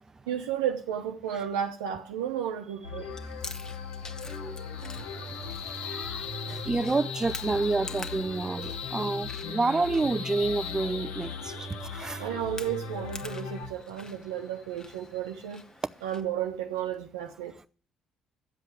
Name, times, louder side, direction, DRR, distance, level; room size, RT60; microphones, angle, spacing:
voice 1, 0.3-3.1 12.2-15.6 16.0-17.7, right 9 dB, 85° right, 1.0 m, -33 dB
sound 1, 2.8-13.7, left 4 dB, 85° left, 3.2 m, -39 dB
sound 2, 3.0-15.6, left 8 dB, 60° left, 1.2 m, -42 dB
Chewing mastication, 3.1-16.2, left 3 dB, 30° left, 1.4 m, -48 dB
voice 2, 4.3-4.6 5.0-5.1 5.4-12.3, right 3 dB, 25° right, 0.7 m, -29 dB
11.0 x 7.6 x 8.5 m
hypercardioid pair, 50°, 2 cm